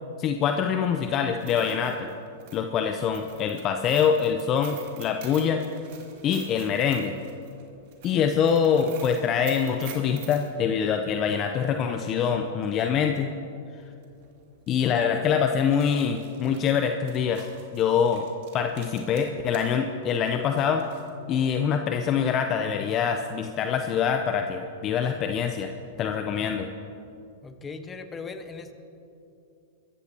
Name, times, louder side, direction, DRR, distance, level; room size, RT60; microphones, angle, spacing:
voice 1, 0.2-2.1 2.5-5.6 6.2-7.1 8.0-13.3 14.7-17.5 17.7-18.2 18.5-20.8 21.3-25.7 26.0-26.7, left 7 dB, 35° left, 5 dB, 0.8 m, -24 dB
sound 1, 1.3-10.5 12.7-12.8 13.1-13.2 14.0-14.2 14.6-14.7 15.6-19.8 20.0-21.1, right 8 dB, 55° right, 2.6 m, -47 dB
voice 2, 27.4-28.7, left 4 dB, 20° left, 7 dB, 1.2 m, -38 dB
23.0 x 14.0 x 2.9 m, 2.7 s
hypercardioid pair, 105°, 0 cm